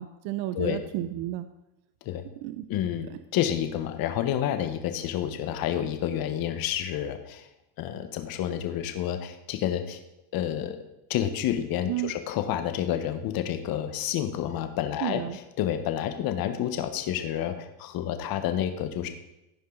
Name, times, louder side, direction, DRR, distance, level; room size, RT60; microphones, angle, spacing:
voice 1, 0.0-1.5 2.4-2.7 11.9-12.1 15.0-15.4, right 14 dB, 60° right, 10 dB, 0.7 m, -32 dB
voice 2, 2.7-7.5 7.8-10.0 10.3-10.8 11.1-19.1, left 10 dB, 55° left, 8 dB, 1.2 m, -29 dB
15.0 x 5.3 x 3.9 m, 0.90 s
supercardioid pair, 105°, 42 cm